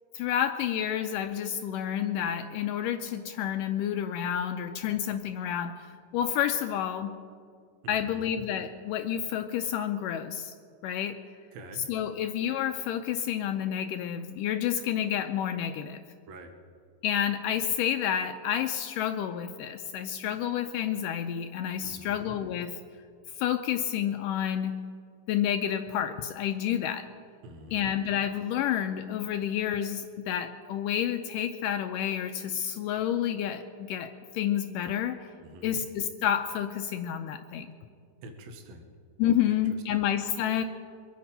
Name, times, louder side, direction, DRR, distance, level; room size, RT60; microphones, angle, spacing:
voice 1, 0.1-5.8 6.1-7.1 7.9-10.5 10.8-11.2 11.9-16.0 17.0-22.8 23.4-24.8 25.3-27.1 27.7-35.2 35.6-37.7 39.2-40.6, left 10 dB, 80° left, 7 dB, 2.0 m, -29 dB
voice 2, 7.8-8.5 11.5-11.9 16.3-16.6 21.8-22.4 27.4-27.9 35.4-35.8 38.2-38.9 39.5-39.6 39.9-40.0, right 1 dB, 65° right, 5 dB, 2.0 m, -46 dB
24.0 x 8.6 x 5.4 m, 2.2 s
omnidirectional pair, 4.0 m